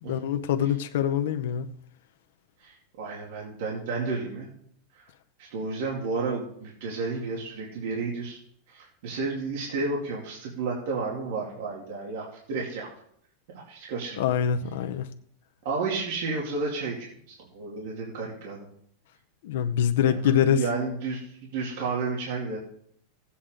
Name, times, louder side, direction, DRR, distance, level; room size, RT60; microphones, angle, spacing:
voice 1, 0.0-1.7 14.2-15.1 19.4-20.6, left 9 dB, 65° left, 0.8 m, -24 dB
voice 2, 2.6-4.5 4.9-5.0 5.4-8.4 8.7-12.9 13.5-14.3 15.6-18.7 20.0-22.6, right 4 dB, 60° right, 2.6 m, -32 dB
16.0 x 8.5 x 3.8 m
supercardioid pair, 165°, 0 cm